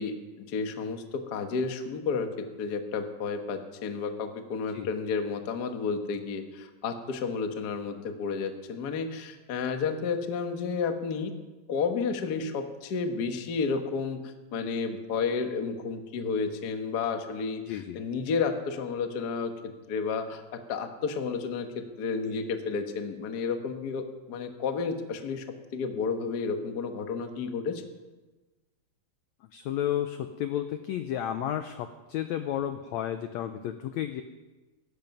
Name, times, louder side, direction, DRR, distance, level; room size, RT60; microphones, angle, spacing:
voice 1, 0.0-2.3 2.6-11.3 11.7-19.5 19.9-25.4 25.7-27.8, left 5 dB, 60° left, 6 dB, 1.0 m, -31 dB
voice 2, 17.6-18.0 29.5-34.2, left 11 dB, 80° left, 9 dB, 1.6 m, -32 dB
18.0 x 14.5 x 5.4 m, 1.2 s
omnidirectional pair, 3.9 m